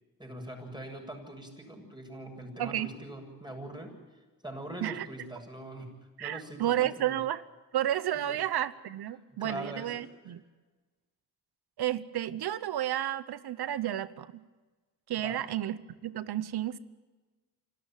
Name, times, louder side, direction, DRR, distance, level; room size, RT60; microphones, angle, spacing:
voice 1, 0.2-3.9 4.4-7.2 8.1-8.4 9.3-9.9 10.3-10.4 15.1-15.5, right 1 dB, 10° right, 2 dB, 7.8 m, -42 dB
voice 2, 2.6-2.9 4.8-5.1 6.2-7.4 7.7-10.4 11.8-14.4 15.1-16.8, right 12 dB, 85° right, 17 dB, 0.9 m, -32 dB
27.0 x 13.5 x 9.2 m, 1.3 s
cardioid pair, 60°, 38 cm